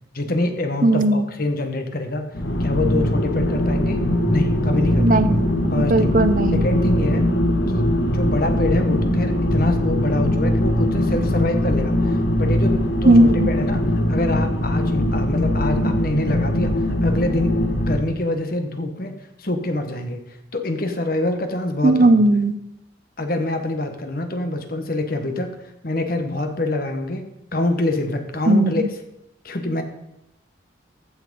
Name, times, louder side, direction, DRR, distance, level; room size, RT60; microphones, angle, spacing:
voice 1, 0.1-2.3 2.6-4.0 4.3-5.3 5.7-6.2 6.5-7.3 7.7-20.2 20.5-22.2 23.2-25.5 25.8-28.8 29.4-29.8, left 1 dB, 45° left, 7 dB, 1.3 m, -25 dB
voice 2, 0.8-1.3 5.0-6.7 13.0-13.5 21.8-22.6 28.5-28.7, right 1 dB, 40° right, 11 dB, 0.7 m, -17 dB
sound 1, 2.3-18.0, left 1 dB, 65° left, 1.3 m, -21 dB
15.0 x 5.9 x 5.3 m, 0.84 s
head